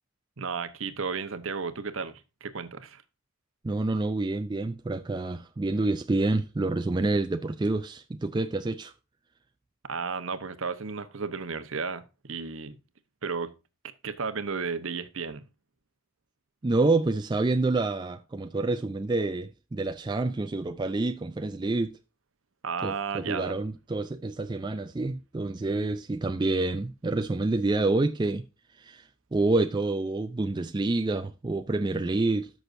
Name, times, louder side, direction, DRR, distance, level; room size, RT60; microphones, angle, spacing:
voice 1, 0.4-3.0 9.8-12.8 13.2-13.5 14.0-15.4 22.6-23.6, right 5 dB, 60° right, 0.9 m, -33 dB
voice 2, 3.6-8.9 16.6-21.9 22.8-28.4 28.8-32.5, right 2 dB, 20° right, 0.3 m, -28 dB
13.0 x 6.2 x 2.6 m
head